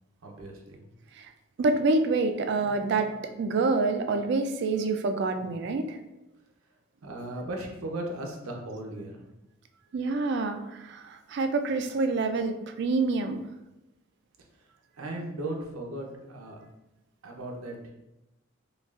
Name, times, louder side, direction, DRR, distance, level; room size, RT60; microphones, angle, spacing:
voice 1, 0.2-0.8 7.0-9.2 15.0-16.6 17.2-17.8, right 1 dB, 80° right, 1 dB, 0.7 m, -37 dB
voice 2, 1.6-3.1 3.4-6.0 9.9-13.4, right 3 dB, 50° right, 8 dB, 0.3 m, -27 dB
5.1 x 2.4 x 2.4 m, 0.93 s
head